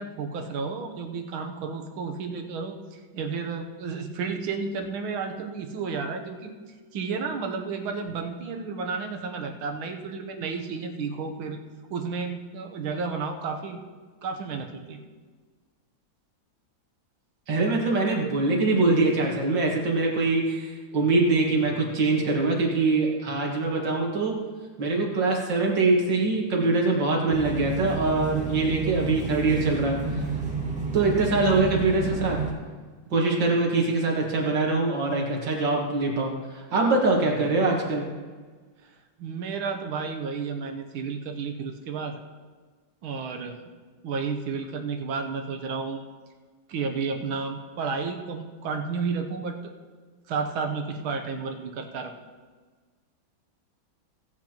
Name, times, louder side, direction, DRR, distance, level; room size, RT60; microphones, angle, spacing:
voice 1, 0.0-11.6 11.9-13.8 14.2-15.0 31.3-31.6 38.8-38.9 39.2-42.2 43.0-43.6 44.0-46.0 46.7-49.7 50.3-52.1, right 5 dB, 85° right, 4 dB, 1.8 m, -32 dB
voice 2, 17.5-24.3 24.8-30.3 30.9-32.4 33.1-38.1, right 3 dB, 65° right, -1 dB, 2.4 m, -23 dB
sound 1, 27.3-32.5, right 4 dB, 5° right, 1.5 m, -30 dB
17.5 x 8.6 x 3.0 m, 1.5 s
omnidirectional pair, 2.2 m